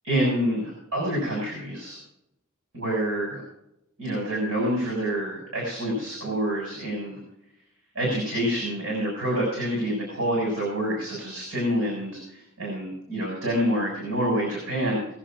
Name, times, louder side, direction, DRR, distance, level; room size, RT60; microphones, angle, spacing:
voice 1, 0.0-2.0 2.7-3.4 4.0-7.2 7.9-15.1, equal, 60° right, -2 dB, 6.6 m, -27 dB
21.5 x 7.6 x 5.0 m, 0.83 s
head